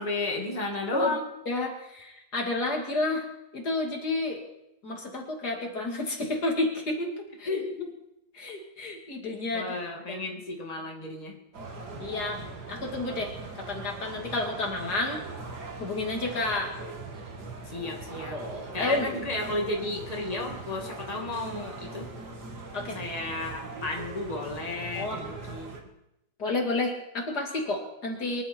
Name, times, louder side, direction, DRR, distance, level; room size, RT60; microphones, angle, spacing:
voice 1, 0.0-1.3 7.5-7.9 9.5-11.4 17.7-18.4 18.7-22.1 22.9-25.9, left 2 dB, 20° left, 0 dB, 2.3 m, -33 dB
voice 2, 1.5-3.2 3.5-4.4 4.8-7.6 8.3-9.8 10.1-10.2 12.0-12.4 12.7-13.3 13.7-15.2 15.8-16.7 18.3-19.2 22.7-23.0 24.9-25.2 26.4-28.4, left 2 dB, 65° left, 1 dB, 2.9 m, -30 dB
sound 1, 11.5-25.8, right 3 dB, 65° right, 2.6 m, -41 dB
24.0 x 11.5 x 4.5 m, 0.86 s
omnidirectional pair, 1.9 m